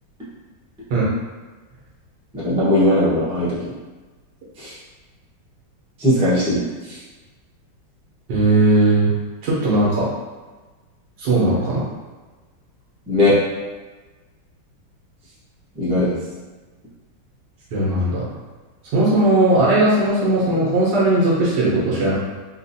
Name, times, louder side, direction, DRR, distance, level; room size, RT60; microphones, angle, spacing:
voice 1, 2.3-3.7 4.6-4.7 6.0-6.6 6.9-7.0 13.1-13.4 15.8-16.1, left 1 dB, 10° right, -10 dB, 0.4 m, -18 dB
voice 2, 8.3-9.1 9.4-10.1 11.2-11.8 17.7-18.3 18.9-22.1, right 2 dB, 65° right, -7 dB, 1.5 m, -18 dB
3.9 x 2.4 x 2.7 m, 1.3 s
omnidirectional pair, 2.3 m